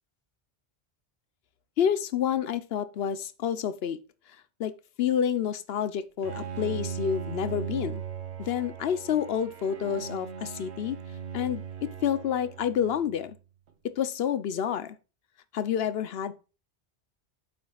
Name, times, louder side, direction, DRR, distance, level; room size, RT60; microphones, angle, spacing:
voice 1, 1.8-4.0 4.6-4.7 5.0-8.0 8.4-11.0 11.3-11.6 12.0-13.4 14.0-15.0 15.5-16.3, left 8 dB, 70° left, 0.9 m, -28 dB
Bowed string instrument, 6.2-13.3, right 8 dB, 85° right, 1.2 m, -38 dB
8.5 x 7.1 x 2.3 m
omnidirectional pair, 1.1 m